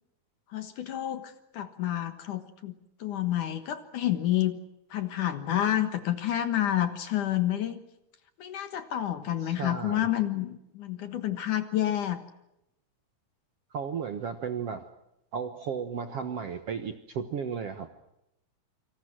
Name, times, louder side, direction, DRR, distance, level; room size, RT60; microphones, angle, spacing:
voice 1, 0.5-2.7 3.0-4.6 4.9-7.8 8.4-12.2, left 12 dB, 60° left, 10 dB, 2.5 m, -29 dB
voice 2, 9.4-10.1 13.7-14.8 15.3-17.9, right 6 dB, 75° right, 9 dB, 1.4 m, -34 dB
28.0 x 25.5 x 6.1 m, 0.85 s
omnidirectional pair, 4.7 m